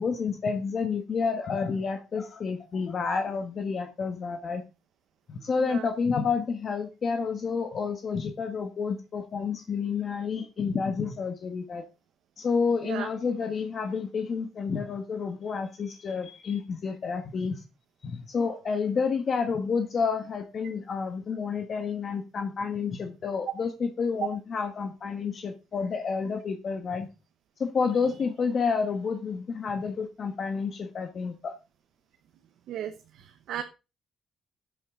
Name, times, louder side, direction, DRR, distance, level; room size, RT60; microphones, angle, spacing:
voice 1, 0.0-4.6 5.3-11.8 12.4-17.6 18.0-27.1 27.6-31.5, left 5 dB, 50° left, 6 dB, 1.4 m, -29 dB
voice 2, 32.7-33.6, right 10 dB, 80° right, 7 dB, 0.9 m, -36 dB
13.5 x 7.7 x 3.8 m, 0.30 s
cardioid pair, 90°, 0 cm